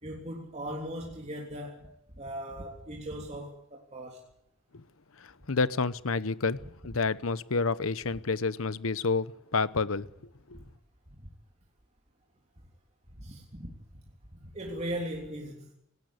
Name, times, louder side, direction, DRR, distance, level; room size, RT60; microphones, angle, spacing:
voice 1, 0.0-4.2 11.2-11.3 13.2-13.8 14.3-15.7, right 1 dB, 30° right, 3.3 m, -39 dB
voice 2, 5.2-10.1 10.5-10.6, left 4 dB, 75° left, 0.9 m, -29 dB
19.0 x 18.5 x 8.4 m
head